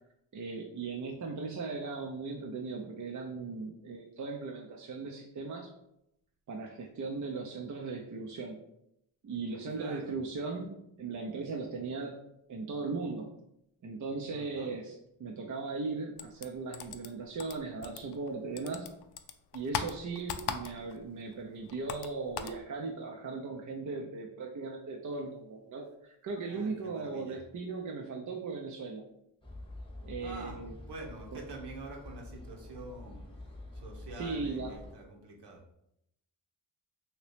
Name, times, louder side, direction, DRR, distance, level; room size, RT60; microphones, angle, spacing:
voice 1, 0.3-5.7 6.5-8.6 9.2-12.2 12.5-13.4 13.8-19.0 19.5-29.0 30.0-30.7 31.3-31.4 34.1-34.8, right 4 dB, 40° right, 1 dB, 0.6 m, -38 dB
voice 2, 9.7-10.1 14.3-14.7 26.5-27.4 30.2-30.6 30.8-33.2 33.7-35.7, right 2 dB, 60° right, 1 dB, 1.0 m, -46 dB
sound 1, 16.2-18.3 18.6-21.1 21.3-22.6, left 8 dB, 60° left, 0.5 m, -39 dB
sound 2, 29.4-34.9, left 1 dB, 10° left, 0.9 m, -47 dB
2.9 x 2.8 x 3.2 m, 0.79 s
supercardioid pair, 45°, 46 cm